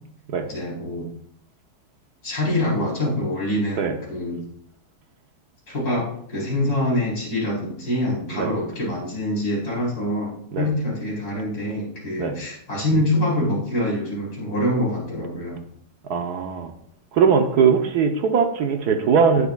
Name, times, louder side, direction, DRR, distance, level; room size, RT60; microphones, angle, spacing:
voice 1, 0.4-1.1 2.2-4.4 5.7-15.6, left 1 dB, 65° left, -5 dB, 4.8 m, -25 dB
voice 2, 16.1-16.7 17.1-19.5, right 6 dB, 70° right, 5 dB, 1.4 m, -20 dB
18.5 x 6.8 x 2.4 m, 0.68 s
omnidirectional pair, 1.8 m